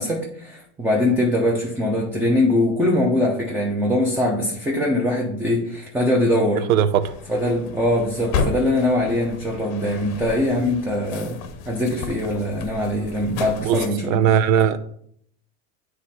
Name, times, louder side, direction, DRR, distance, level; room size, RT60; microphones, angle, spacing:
voice 1, 0.0-6.6 7.3-11.4 11.6-14.3, left 1 dB, 5° right, 0.7 m, -22 dB
voice 2, 6.7-7.1 13.6-14.8, right 9 dB, 80° right, 0.7 m, -19 dB
sound 1, 7.0-13.9, left 5 dB, 40° left, 0.8 m, -32 dB
9.6 x 3.2 x 4.2 m
supercardioid pair, 155°, 40 cm